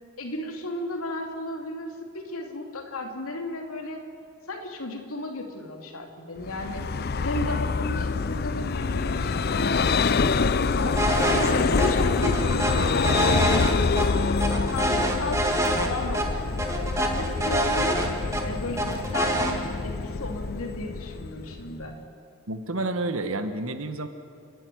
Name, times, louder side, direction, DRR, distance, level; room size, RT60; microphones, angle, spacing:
voice 1, 0.2-4.0 4.5-6.9 7.2-11.1 11.5-16.6 17.0-18.0 18.4-22.0, left 2 dB, 75° left, 2 dB, 2.9 m, -34 dB
Vehicle, 6.4-21.9, left 4 dB, 45° left, 0.5 m, -26 dB
sound 1, 11.0-11.5 11.8-11.9 12.2-14.1 14.4-15.9 16.1-16.3 16.6-18.4 18.8-19.5, right 1 dB, 15° right, 2.0 m, -26 dB
voice 2, 22.5-24.1, right 2 dB, 70° right, 9 dB, 1.4 m, -29 dB
30.0 x 11.0 x 9.5 m, 2.3 s
head